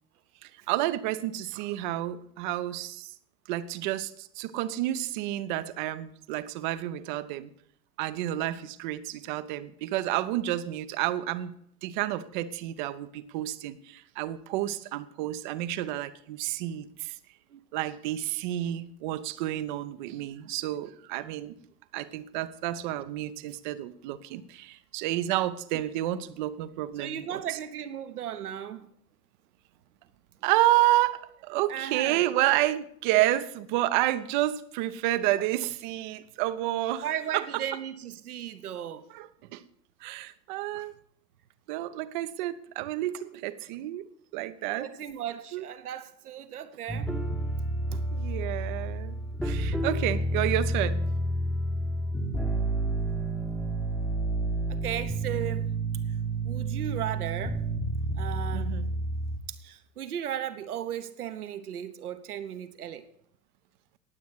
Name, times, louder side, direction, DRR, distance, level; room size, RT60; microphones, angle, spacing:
voice 1, 0.4-3.1 3.5-7.5 8.0-11.6 11.8-17.1 17.7-21.5 21.9-27.4 30.4-37.1 37.3-37.4 39.1-39.6 40.0-40.9 41.7-44.0 44.3-44.9 45.5-45.6 48.1-51.0 58.5-59.0, right 14 dB, 30° right, 0.7 m, -30 dB
voice 2, 27.0-28.9 31.7-32.2 37.0-39.0 40.7-40.9 44.8-47.1 47.9-48.1 54.7-55.7 56.4-57.6 58.2-58.8 59.6-63.0, right 10 dB, 60° right, 1.1 m, -36 dB
sound 1, 46.9-59.4, right 2 dB, ahead, 1.0 m, -30 dB
19.5 x 8.2 x 4.8 m
figure-of-eight pair, 100°, 49 cm